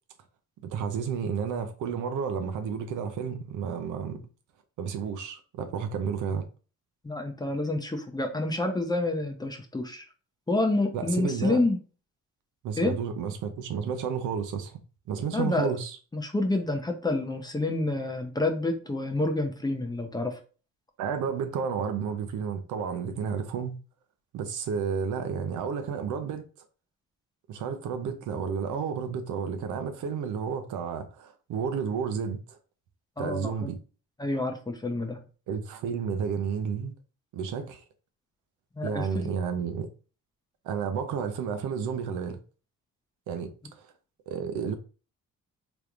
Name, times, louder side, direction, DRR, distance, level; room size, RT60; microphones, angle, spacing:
voice 1, 0.6-4.2 4.8-6.4 10.9-11.6 12.6-14.8 15.1-16.0 21.0-23.8 24.3-26.5 27.5-32.4 33.2-33.8 35.5-36.9 37.3-37.8 38.8-39.9 40.6-42.4 43.3-43.9 44.3-44.8, right 6 dB, 85° right, 0.7 m, -31 dB
voice 2, 7.0-10.0 10.5-11.8 12.8-13.0 15.3-15.7 16.1-20.4 33.2-33.7 34.2-35.2 38.8-39.3, left 2 dB, 15° left, 0.7 m, -28 dB
3.5 x 3.0 x 2.5 m
cardioid pair, 90°, 30 cm